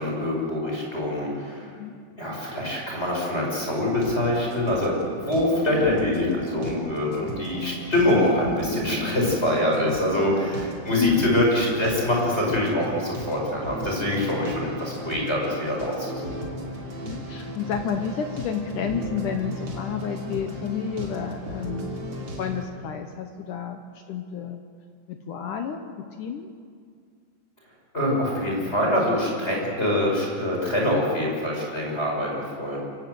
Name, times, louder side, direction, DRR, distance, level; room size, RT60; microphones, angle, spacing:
voice 1, 0.0-1.7 2.2-5.0 5.2-16.4 27.9-32.8, left 1 dB, 15° left, -2 dB, 5.5 m, -24 dB
sound 1, 3.9-22.6, equal, 35° right, 3.5 m, -36 dB
voice 2, 8.9-9.2 11.0-11.3 14.0-14.3 16.9-22.0 22.4-24.6 25.1-25.9 26.2-26.5, left 7 dB, 80° left, 5 dB, 1.8 m, -30 dB
26.0 x 17.0 x 7.9 m, 2.1 s
omnidirectional pair, 5.0 m